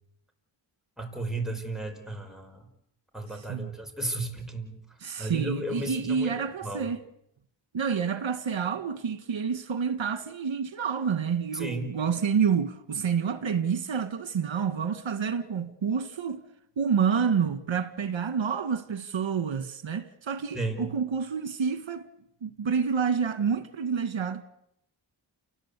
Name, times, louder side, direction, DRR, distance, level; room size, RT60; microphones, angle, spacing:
voice 1, 1.0-2.6 3.1-4.8 5.2-6.3 6.6-6.9 11.5-11.9 20.5-20.9, right 2 dB, ahead, 5.2 m, -34 dB
voice 2, 3.3-3.7 5.0-7.0 7.7-16.4 16.8-22.1 22.4-24.4, right 6 dB, 85° right, 1.9 m, -28 dB
29.5 x 19.5 x 8.4 m
wide cardioid pair, 110°, 45 cm